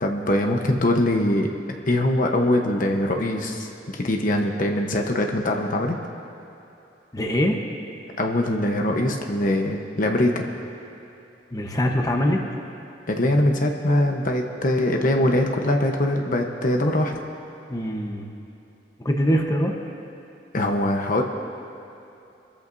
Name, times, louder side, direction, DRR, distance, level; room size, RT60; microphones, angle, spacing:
voice 1, 0.0-1.5 1.9-6.0 8.2-10.4 13.1-17.1 20.5-21.2, left 1 dB, 45° left, 3 dB, 1.0 m, -22 dB
voice 2, 7.1-7.6 11.5-12.4 17.7-18.3 19.0-19.7, equal, 20° left, 2 dB, 1.0 m, -23 dB
26.0 x 14.0 x 2.7 m, 2.8 s
head